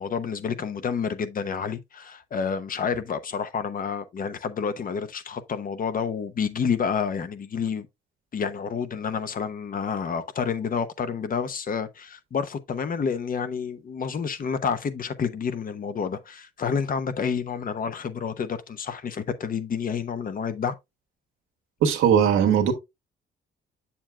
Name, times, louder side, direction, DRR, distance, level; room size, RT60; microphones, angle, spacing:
voice 1, 0.0-7.9 8.3-20.8, left 6 dB, 45° left, 0.8 m, -29 dB
voice 2, 21.8-22.7, right 8 dB, 90° right, 1.6 m, -19 dB
7.4 x 7.1 x 2.2 m
cardioid pair, 90°, 20 cm